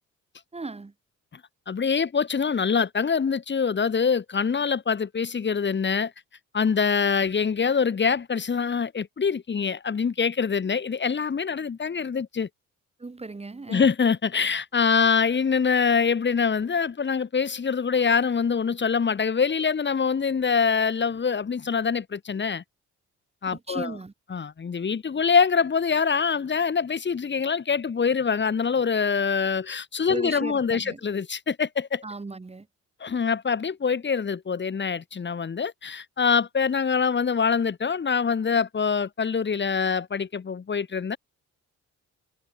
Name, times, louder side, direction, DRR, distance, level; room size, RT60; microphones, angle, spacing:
voice 1, 0.5-0.9 13.0-13.9 23.5-24.1 30.1-31.0 32.0-32.7, right 3 dB, 20° right, 2.1 m, -37 dB
voice 2, 1.7-6.1 6.5-12.5 13.7-22.6 23.4-23.9 24.3-32.0 33.0-41.2, left 6 dB, 35° left, 2.5 m, -24 dB
cardioid pair, 90°, 30 cm